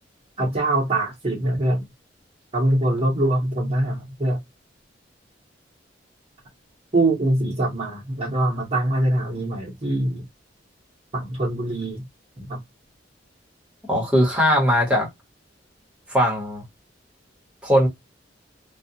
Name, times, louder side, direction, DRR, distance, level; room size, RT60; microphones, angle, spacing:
voice 1, 0.4-1.8 2.5-4.4 6.9-10.2 11.1-12.0 12.4-12.6, right 1 dB, 35° right, 1.0 m, -23 dB
voice 2, 13.9-15.1 16.1-16.6 17.6-17.9, equal, 5° right, 1.1 m, -19 dB
2.3 x 2.3 x 2.6 m
head